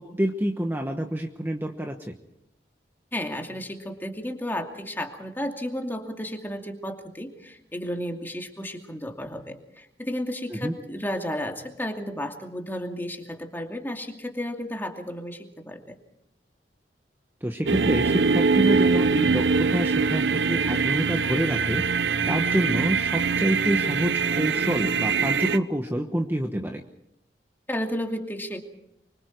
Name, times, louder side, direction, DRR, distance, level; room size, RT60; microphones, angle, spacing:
voice 1, 0.0-2.1 10.5-10.7 17.4-21.8 22.3-26.8, equal, 10° right, 3 dB, 1.2 m, -27 dB
voice 2, 3.1-16.0 27.7-28.6, left 1 dB, 10° left, 3 dB, 2.6 m, -33 dB
sound 1, 17.7-25.6, right 4 dB, 75° right, 0.8 m, -23 dB
25.5 x 24.5 x 4.7 m, 0.81 s
head